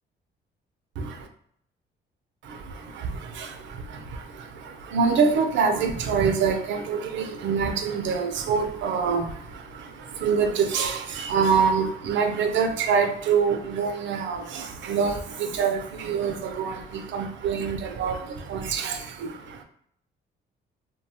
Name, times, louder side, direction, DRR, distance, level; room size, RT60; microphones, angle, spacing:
voice 1, 1.0-1.3 2.4-19.6, right 5 dB, 70° right, 6 dB, 0.5 m, -26 dB
2.6 x 2.2 x 2.7 m, 0.66 s
cardioid pair, 90°, 20 cm